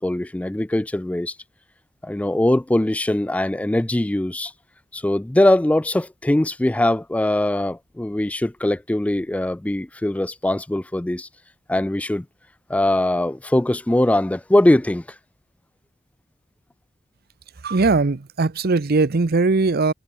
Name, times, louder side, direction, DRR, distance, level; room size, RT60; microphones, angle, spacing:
voice 1, 0.0-1.4 2.0-4.5 4.9-11.3 11.7-12.3 12.7-15.0, left 1 dB, 5° left, 0.3 m, -21 dB
voice 2, 17.6-19.9, right 3 dB, 50° right, 0.7 m, -19 dB
head